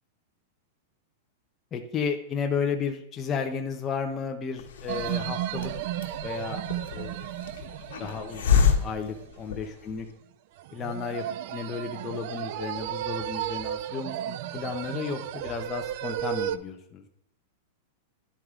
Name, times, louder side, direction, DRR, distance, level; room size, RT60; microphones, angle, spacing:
voice 1, 1.7-5.7 6.2-6.6 6.9-7.3 8.0-10.1 10.7-17.1, left 6 dB, 25° left, 3 dB, 0.8 m, -33 dB
Hiss, 4.6-10.1, left 7 dB, 80° left, 1.4 m, -29 dB
sound 1, 4.9-9.2 10.6-16.6, right 12 dB, 55° right, 0.4 m, -34 dB
11.5 x 4.7 x 3.7 m, 0.75 s
supercardioid pair, 145°, 0 cm